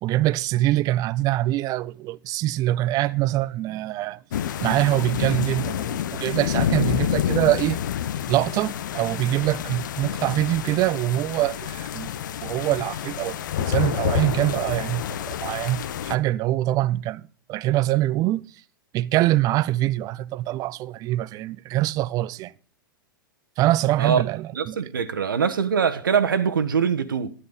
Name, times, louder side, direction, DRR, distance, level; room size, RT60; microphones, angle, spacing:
voice 1, 0.0-4.2 4.6-7.8 8.3-12.1 12.4-17.2 17.5-18.4 18.9-22.5 23.6-24.8, right 15 dB, 30° right, 0.5 m, -24 dB
sound 1, 4.3-16.2, left 10 dB, 60° left, 0.8 m, -28 dB
voice 2, 24.5-27.3, right 6 dB, 70° right, 1.2 m, -23 dB
12.5 x 10.0 x 5.3 m
figure-of-eight pair, 95°, 11 cm